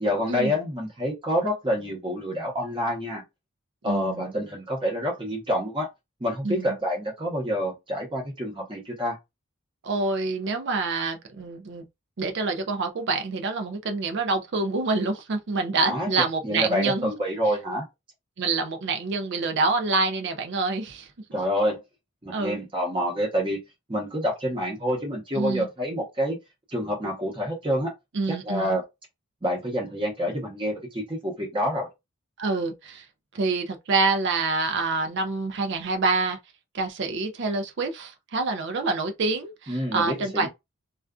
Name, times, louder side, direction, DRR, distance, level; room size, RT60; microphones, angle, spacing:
voice 1, 0.0-3.2 3.8-5.9 6.2-9.2 15.8-16.1 16.4-17.9 21.3-21.8 22.2-23.6 23.9-26.4 26.7-27.9 28.3-28.8 29.4-31.9 39.7-40.5, equal, 25° right, 0.9 m, -27 dB
voice 2, 3.8-4.3 6.4-6.7 9.8-11.8 12.2-17.1 18.4-21.1 22.3-22.6 25.4-25.7 28.1-28.8 32.4-33.1 33.3-36.4 36.7-40.5, right 3 dB, 55° right, 0.4 m, -26 dB
2.4 x 2.3 x 2.3 m
head